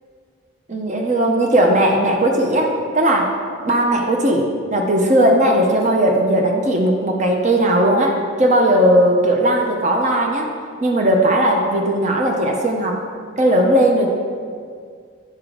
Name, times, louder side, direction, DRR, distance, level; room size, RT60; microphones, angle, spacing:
voice 1, 0.7-3.3 3.6-10.5 10.8-13.0 13.4-14.1, right 1 dB, 35° right, 1 dB, 0.7 m, -17 dB
8.6 x 3.7 x 4.8 m, 2.1 s
head